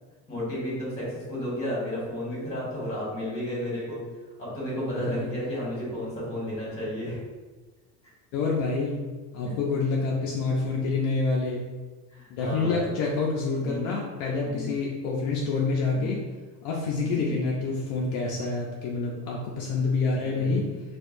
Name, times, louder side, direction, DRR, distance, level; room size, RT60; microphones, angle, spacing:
voice 1, 0.3-4.0 4.4-7.2 9.4-9.5 12.1-12.8 13.6-13.9 14.4-14.7 15.9-16.1 17.0-17.3 20.2-20.7, equal, 20° left, -6 dB, 1.4 m, -33 dB
voice 2, 4.9-5.3 8.3-9.0 9.3-11.6 12.3-16.2 16.6-20.6, left 3 dB, 60° left, -2 dB, 0.6 m, -27 dB
4.4 x 2.3 x 2.5 m, 1.3 s
cardioid pair, 160°, 35 cm